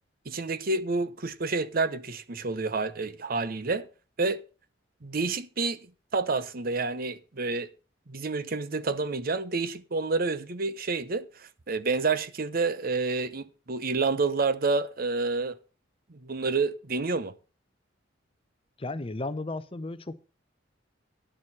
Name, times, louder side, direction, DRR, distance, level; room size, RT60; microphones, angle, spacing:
voice 1, 0.3-3.9 4.2-4.4 5.0-5.8 6.1-7.7 8.1-15.6 16.1-17.3, right 3 dB, 50° right, 0.8 m, -29 dB
voice 2, 18.8-20.3, left 2 dB, 30° left, 0.7 m, -34 dB
10.0 x 7.1 x 6.1 m
head